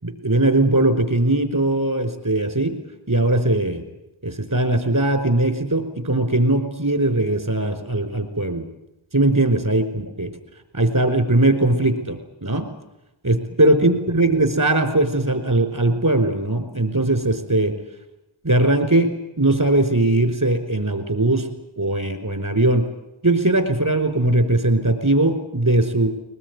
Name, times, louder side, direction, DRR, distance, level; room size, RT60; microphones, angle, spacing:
voice 1, 0.0-2.8 3.1-3.8 4.2-8.6 9.1-10.3 10.7-12.7 13.2-17.7 18.4-19.1 19.4-21.5 21.8-22.8 23.2-26.1, right 2 dB, 40° right, 8 dB, 5.2 m, -20 dB
21.5 x 21.5 x 9.8 m, 0.90 s
wide cardioid pair, 55°, 49 cm